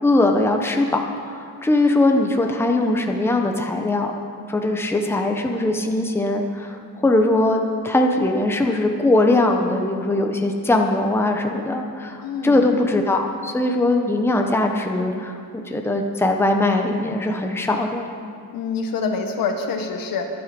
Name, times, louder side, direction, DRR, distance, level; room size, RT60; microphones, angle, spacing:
voice 1, 0.0-4.1 4.5-18.1, left 2 dB, 5° left, 3 dB, 0.9 m, -21 dB
voice 2, 12.2-12.6 18.5-20.4, left 4 dB, 80° left, 5 dB, 1.5 m, -26 dB
23.5 x 7.9 x 5.3 m, 2.4 s
cardioid pair, 160°, 34 cm